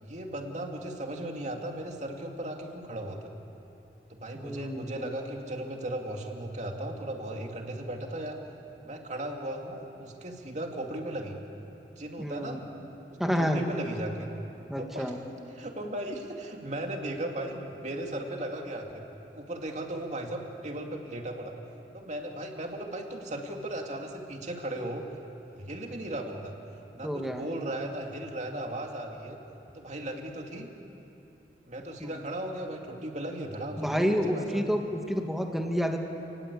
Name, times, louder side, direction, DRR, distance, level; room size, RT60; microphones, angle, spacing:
voice 1, 0.0-3.3 4.1-8.4 8.8-11.4 12.0-12.7 13.3-14.3 14.8-15.1 15.6-19.0 19.3-21.6 21.9-25.0 25.6-26.5 26.9-29.4 29.7-30.7 31.7-34.7, right 1 dB, 40° right, 2 dB, 2.5 m, -36 dB
voice 2, 4.3-5.0 12.2-12.6 13.2-13.6 14.7-15.2 27.0-27.4 33.8-36.0, equal, ahead, 3 dB, 1.8 m, -29 dB
29.5 x 19.5 x 8.4 m, 3.0 s
head